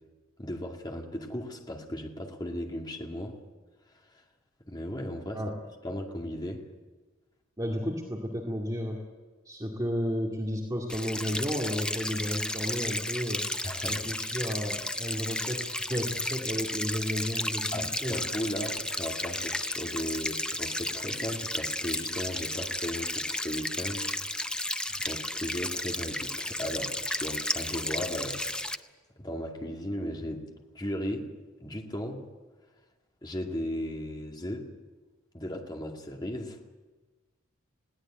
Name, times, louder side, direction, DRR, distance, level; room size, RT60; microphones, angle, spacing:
voice 1, 0.4-3.4 4.1-4.2 4.7-5.4 5.8-6.6 13.6-14.0 17.7-28.8 29.2-30.5 30.7-31.3 31.6-32.2 33.2-34.7 35.3-36.6, left 1 dB, 20° left, 1 dB, 2.3 m, -36 dB
voice 2, 7.6-9.0 9.5-13.4 13.9-18.2, equal, 15° right, -2 dB, 2.2 m, -32 dB
sound 1, 10.9-28.8, left 1 dB, 5° left, 0.6 m, -33 dB
21.5 x 16.5 x 8.9 m, 1.3 s
head